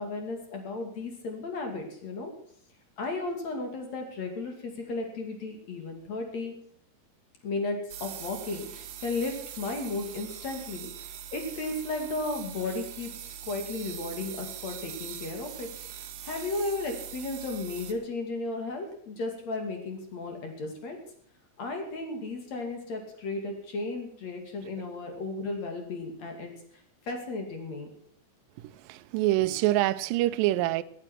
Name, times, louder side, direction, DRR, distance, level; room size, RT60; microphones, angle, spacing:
voice 1, 0.0-2.3 3.0-6.5 7.4-10.9 11.3-13.1 13.4-15.7 16.2-21.0 21.6-26.5 27.0-27.9, left 3 dB, 45° left, 3.3 m, -34 dB
sound 1, 7.9-17.9, right 10 dB, 65° right, 3.0 m, -42 dB
voice 2, 28.9-30.8, right 16 dB, 85° right, 2.0 m, -25 dB
18.0 x 10.0 x 6.1 m
omnidirectional pair, 4.8 m